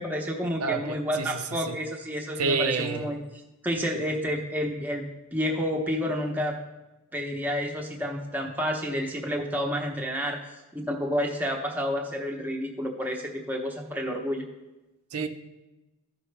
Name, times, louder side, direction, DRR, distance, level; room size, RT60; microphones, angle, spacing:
voice 1, 0.0-3.2 3.6-6.6 7.1-10.4 10.7-14.4, equal, 10° right, 1 dB, 0.8 m, -30 dB
voice 2, 0.6-1.3 1.7-1.8 2.4-3.1 15.1-15.3, right 4 dB, 85° right, 7 dB, 0.7 m, -28 dB
13.5 x 5.6 x 3.3 m, 1.0 s
head